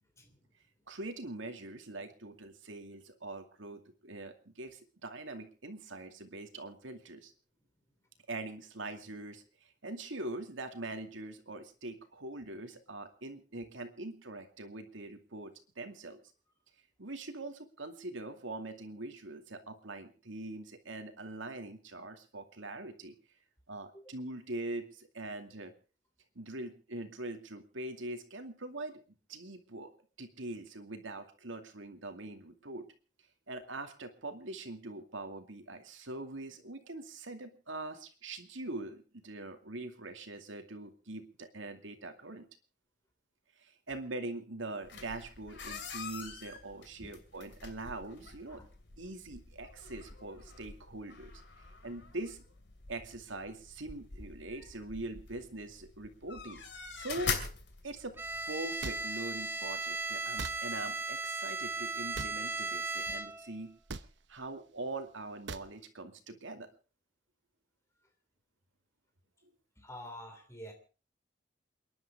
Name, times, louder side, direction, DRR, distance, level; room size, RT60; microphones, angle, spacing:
voice 1, 0.2-0.5 23.9-24.0 47.0-47.1 48.5-48.7 63.1-63.2 69.8-70.7, equal, 15° left, 5 dB, 3.2 m, -48 dB
voice 2, 0.9-7.3 8.3-16.2 17.0-23.1 23.7-25.7 26.4-29.0 29.3-29.9 30.2-32.9 33.5-42.5 43.6-48.6 49.0-51.3 51.8-52.4 52.9-56.6 57.0-57.4 57.8-58.2 58.5-63.8 64.3-66.7, right 2 dB, 85° right, 7 dB, 2.3 m, -43 dB
sound 1, 44.8-58.4, left 5 dB, 65° left, 2.8 m, -44 dB
Bowed string instrument, 58.2-63.6, right 3 dB, 10° right, 0.7 m, -37 dB
sound 2, 58.8-59.0 60.4-60.6 62.1-62.4 63.9-64.1 65.5-65.7, right 4 dB, 65° right, 0.9 m, -40 dB
28.5 x 11.0 x 3.6 m, 0.36 s
head